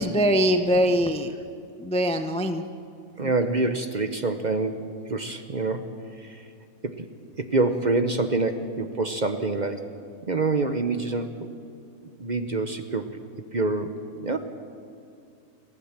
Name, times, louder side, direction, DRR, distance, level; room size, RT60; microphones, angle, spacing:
voice 1, 0.0-1.3 1.8-2.6 3.2-3.3, equal, 10° left, 7 dB, 0.4 m, -23 dB
voice 2, 3.2-6.4 6.8-7.1 7.4-9.8 10.3-11.3 12.2-13.2 13.5-14.4, right 3 dB, 35° right, 8 dB, 0.8 m, -26 dB
30.0 x 12.0 x 7.4 m, 2.4 s
omnidirectional pair, 1.7 m